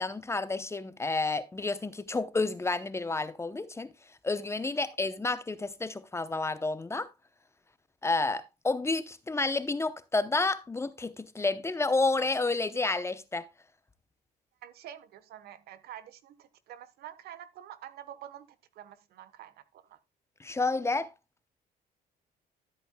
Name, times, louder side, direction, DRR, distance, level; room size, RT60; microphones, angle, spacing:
voice 1, 0.0-3.9 4.2-7.1 8.0-13.5 20.4-21.1, left 3 dB, 15° left, 0.7 m, -30 dB
voice 2, 14.6-20.0, right 11 dB, 70° right, 1.1 m, -47 dB
13.0 x 8.3 x 2.2 m
cardioid pair, 110°, 17 cm